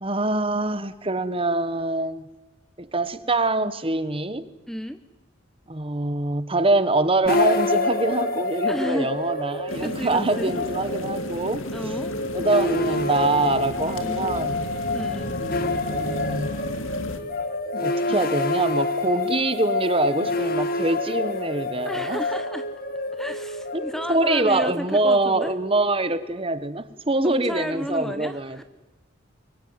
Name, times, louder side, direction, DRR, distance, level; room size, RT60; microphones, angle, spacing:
voice 1, 0.0-2.2 2.8-4.5 5.7-11.6 12.3-14.6 15.3-16.5 17.8-22.2 23.7-28.6, right 2 dB, 25° right, 13 dB, 1.2 m, -24 dB
voice 2, 4.7-5.0 8.7-9.1 9.8-10.5 11.7-12.1 14.0-14.3 14.9-15.3 21.8-22.6 23.1-25.5 27.2-28.6, equal, ahead, 10 dB, 0.8 m, -32 dB
sound 1, 7.3-26.4, left 2 dB, 45° left, 1.9 m, -28 dB
sound 2, 9.7-17.2, left 1 dB, 85° left, 2.4 m, -34 dB
24.0 x 23.0 x 9.6 m, 1.1 s
head